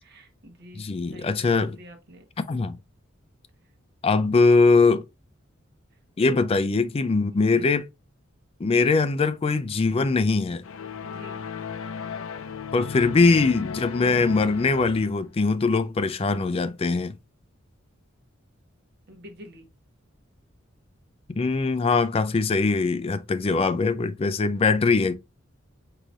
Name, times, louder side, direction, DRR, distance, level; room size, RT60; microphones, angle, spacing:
voice 1, 0.0-0.8 1.1-2.3 7.3-7.7 11.0-11.4 19.1-19.7, equal, 55° right, 1.1 m, -47 dB
voice 2, 0.7-1.8 2.5-2.8 4.0-5.0 6.2-7.9 8.6-10.6 12.7-17.1 21.3-25.2, left 3 dB, 30° left, 0.3 m, -22 dB
sound 1, 10.6-15.3, left 6 dB, 85° left, 0.5 m, -35 dB
4.8 x 3.9 x 2.4 m
head